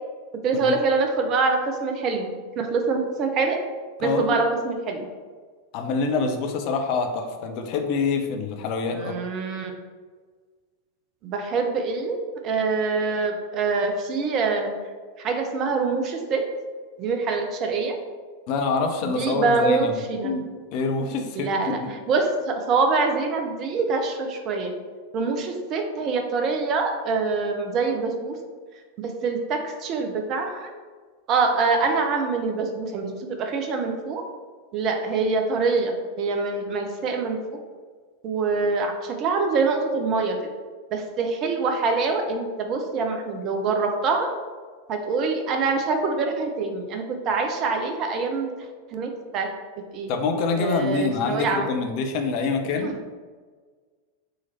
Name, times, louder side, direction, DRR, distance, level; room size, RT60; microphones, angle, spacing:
voice 1, 0.4-2.3 2.6-3.6 4.0-5.0 8.9-9.7 11.2-12.2 12.4-14.7 15.2-16.4 17.0-18.0 19.0-20.3 21.4-21.8 22.1-24.7 25.1-28.4 29.0-30.7 31.3-34.2 34.7-37.6 38.2-40.4 40.9-44.3 44.9-48.5 48.9-49.5 49.9-50.1 50.6-51.7 52.8-52.9, right 4 dB, 35° right, 4 dB, 0.6 m, -25 dB
voice 2, 4.0-4.4 5.7-9.2 18.5-20.5 20.7-21.9 50.1-52.9, left 4 dB, 45° left, 4 dB, 0.6 m, -26 dB
3.8 x 3.1 x 4.1 m, 1.5 s
figure-of-eight pair, 90°, 0 cm